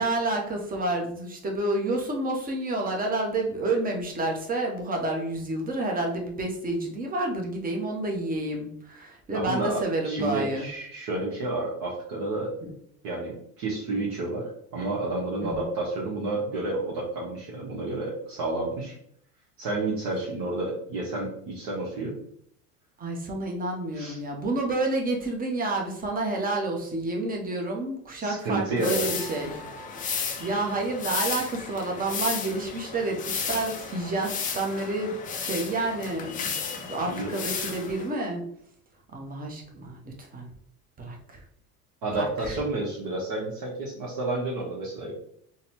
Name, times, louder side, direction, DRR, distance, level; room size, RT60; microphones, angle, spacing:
voice 1, 0.0-10.7 12.6-12.7 15.4-15.7 23.0-29.5 30.4-38.4 39.1-40.5 41.0-41.4 42.1-42.6, right 2 dB, 20° right, 1 dB, 0.8 m, -29 dB
voice 2, 9.3-9.8 10.0-12.5 13.0-18.9 19.6-22.1 23.9-24.2 28.2-29.1 37.0-37.3 37.6-37.7 42.0-45.1, right 2 dB, 50° right, -5 dB, 1.1 m, -30 dB
sound 1, 28.8-38.1, left 6 dB, 20° left, 0.4 m, -33 dB
3.9 x 2.2 x 2.9 m, 0.66 s
hypercardioid pair, 75°, 46 cm